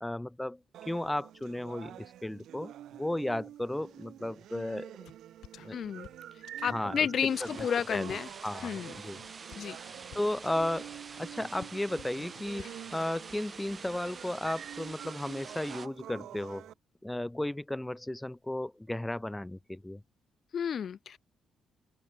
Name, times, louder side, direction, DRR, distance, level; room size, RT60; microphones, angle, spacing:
voice 1, 0.0-0.6 0.9-2.7 3.0-4.9 5.6-5.8 6.7-7.0 7.6-8.2 8.4-9.2 10.1-10.9 11.2-16.7 17.0-20.0, left 1 dB, 10° left, 0.4 m, -34 dB
sound 1, 0.7-16.7, right 12 dB, 80° right, 2.1 m, -47 dB
sound 2, 5.1-5.2 5.4-13.1, left 12 dB, 80° left, 5.7 m, -54 dB
voice 2, 5.7-6.1 6.6-8.3 8.6-8.9 9.6-9.8 20.5-21.2, left 8 dB, 55° left, 0.8 m, -31 dB
sound 3, 7.2-15.9, right 5 dB, 35° right, 1.9 m, -47 dB
open air
cardioid pair, 105°, 0 cm